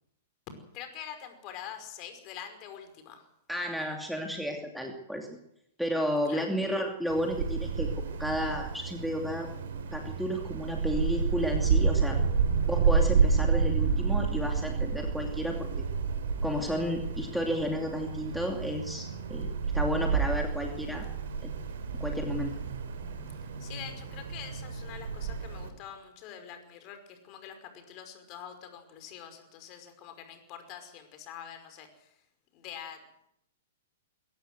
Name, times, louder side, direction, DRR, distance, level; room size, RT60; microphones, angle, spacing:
voice 1, 0.7-3.3 6.3-6.5 23.6-32.1 32.5-33.0, left 9 dB, 35° left, 8 dB, 5.3 m, -45 dB
voice 2, 3.5-5.3 5.8-9.5 9.9-12.2 12.7-15.7 16.4-21.0 21.4-21.6 22.0-22.5, equal, ahead, 2 dB, 2.7 m, -32 dB
Wind, 7.1-25.7, right 5 dB, 60° right, 3.8 m, -30 dB
22.5 x 17.5 x 8.1 m, 0.77 s
figure-of-eight pair, 105°, 0 cm